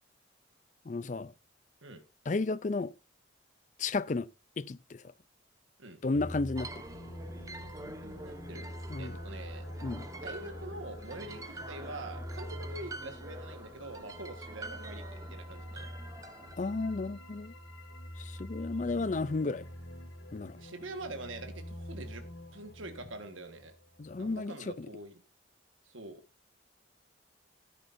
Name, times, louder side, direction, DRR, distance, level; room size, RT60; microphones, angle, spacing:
voice 1, 0.9-1.3 2.3-2.9 3.8-4.3 4.6-5.0 6.0-6.8 8.9-9.1 9.8-10.1 16.6-17.5 18.2-19.6 20.3-20.6 24.0-24.9, left 3 dB, 40° left, 0.4 m, -33 dB
sound 1, 6.1-24.4, equal, 70° left, 2.4 m, -45 dB
sound 2, 6.6-16.6, right 2 dB, 15° right, 0.8 m, -46 dB
voice 2, 7.8-8.7 9.0-9.6 10.2-15.9 20.6-22.2 22.5-23.7 24.2-25.2 25.8-26.2, right 2 dB, 85° right, 1.6 m, -45 dB
13.5 x 10.0 x 2.7 m
head